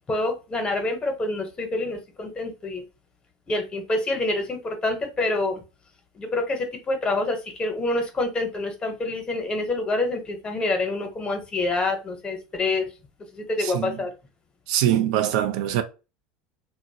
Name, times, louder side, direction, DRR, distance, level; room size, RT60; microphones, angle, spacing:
voice 1, 0.1-2.8 3.5-5.6 6.1-12.9 13.3-14.1, left 2 dB, 25° left, 0.8 m, -27 dB
voice 2, 13.6-14.1 14.7-15.8, right 11 dB, 75° right, 0.4 m, -23 dB
2.5 x 2.0 x 2.7 m
supercardioid pair, 100°, 4 cm